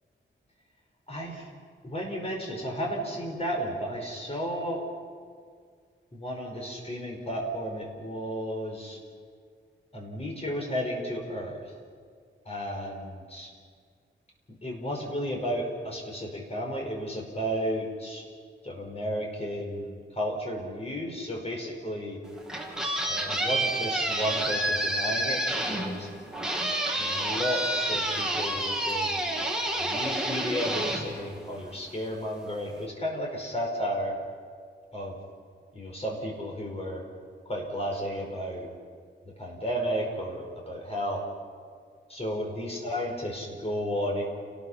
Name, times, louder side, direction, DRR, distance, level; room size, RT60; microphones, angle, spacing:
voice 1, 1.1-1.5 1.8-4.8 6.1-9.0 9.9-11.6 12.5-13.5 14.6-18.2 18.6-22.2 23.1-26.1 26.7-29.3 29.8-34.2 34.9-35.2 35.7-37.0 37.5-38.7 39.2-41.2 42.1-44.2, equal, 30° left, 0 dB, 5.2 m, -33 dB
sound 1, 22.2-31.9, right 1 dB, 5° right, 2.7 m, -29 dB
29.5 x 19.5 x 5.7 m, 2.1 s
wide cardioid pair, 165°, 20 cm